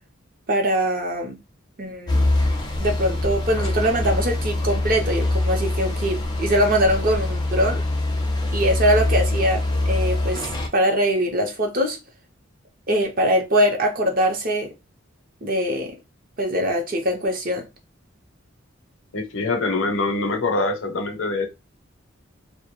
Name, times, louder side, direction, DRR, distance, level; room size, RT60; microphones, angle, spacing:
voice 1, 0.5-1.4 1.8-2.3 2.8-7.8 8.5-12.0 12.9-14.7 15.4-16.0 16.4-17.7, equal, 45° right, 0.6 m, -22 dB
sound 1, 2.1-10.7, left 2 dB, 20° left, 0.4 m, -24 dB
voice 2, 19.1-21.5, left 3 dB, 70° left, 0.6 m, -24 dB
2.2 x 2.0 x 3.0 m
head